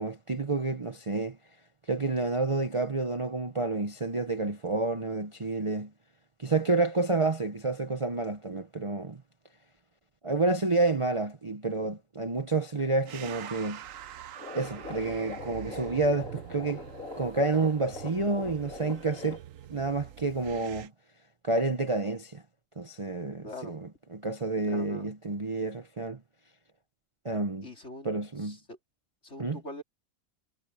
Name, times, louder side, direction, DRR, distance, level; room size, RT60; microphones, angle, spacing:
voice 1, 0.0-1.4 1.9-5.9 6.4-9.2 10.2-13.8 14.5-16.8 17.2-19.4 19.7-20.9 21.4-22.4 22.8-26.2 27.2-27.7 28.0-28.6 29.4-29.6, right 3 dB, 25° right, 0.8 m, -29 dB
sound 1, 13.1-20.9, right 11 dB, 70° right, 1.1 m, -45 dB
sound 2, 14.3-19.4, left 2 dB, 70° left, 3.6 m, -42 dB
voice 2, 23.4-23.8 24.6-25.1 27.6-28.1 28.4-28.8 29.2-29.8, left 1 dB, 55° left, 4.1 m, -43 dB
omnidirectional pair, 1.4 m